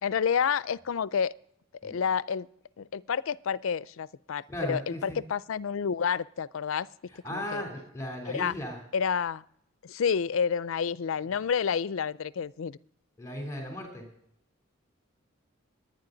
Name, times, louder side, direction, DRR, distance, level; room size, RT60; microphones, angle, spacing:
voice 1, 0.0-1.3 1.8-2.5 2.8-6.9 7.3-7.6 8.3-8.5 8.9-9.4 9.8-12.8, left 7 dB, 70° left, 19 dB, 0.4 m, -29 dB
voice 2, 4.5-5.2 7.1-8.8 11.3-11.4 13.2-14.1, equal, 15° left, 1 dB, 3.2 m, -36 dB
21.5 x 9.6 x 3.9 m, 0.74 s
head